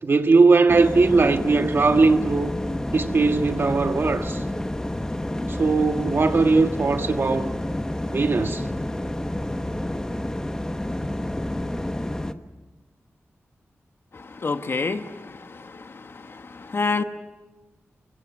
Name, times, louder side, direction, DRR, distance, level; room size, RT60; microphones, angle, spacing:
voice 1, 0.0-2.6 2.9-4.4 5.5-7.5 8.1-8.6, right 3 dB, 50° right, 1.6 m, -19 dB
sound 1, 0.7-12.3, left 1 dB, 15° left, 1.0 m, -29 dB
voice 2, 14.4-15.0 16.7-17.0, left 4 dB, 55° left, 1.3 m, -24 dB
29.5 x 23.5 x 6.2 m
wide cardioid pair, 115°, 5 cm